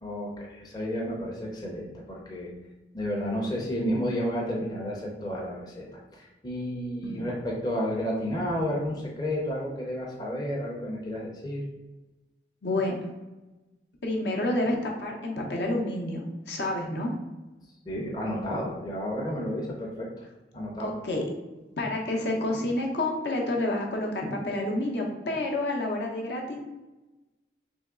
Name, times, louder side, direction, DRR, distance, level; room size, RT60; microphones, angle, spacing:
voice 1, 0.0-2.5 2.9-5.8 6.1-11.6 17.9-20.1 20.5-21.0, equal, 20° left, -2 dB, 0.6 m, -31 dB
voice 2, 12.6-13.0 14.0-16.2 16.5-17.1 20.8-21.2 21.8-26.6, left 1 dB, 65° left, 0 dB, 0.8 m, -29 dB
3.4 x 3.1 x 3.6 m, 1.1 s
head